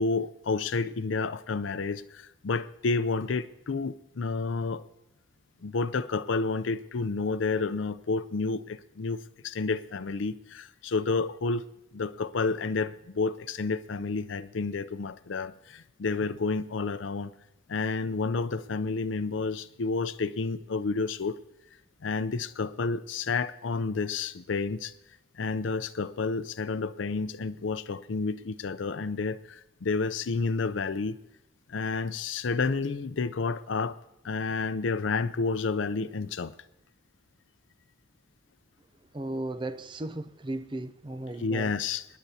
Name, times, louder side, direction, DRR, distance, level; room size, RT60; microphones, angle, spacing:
voice 1, 0.0-4.8 5.6-11.6 11.9-17.3 17.7-21.4 22.0-24.9 25.4-31.1 31.7-34.0 34.2-36.5 41.4-42.1, left 4 dB, 80° left, 0.5 m, -30 dB
voice 2, 39.1-41.7, right 2 dB, 25° right, 0.5 m, -35 dB
26.0 x 10.5 x 2.8 m
head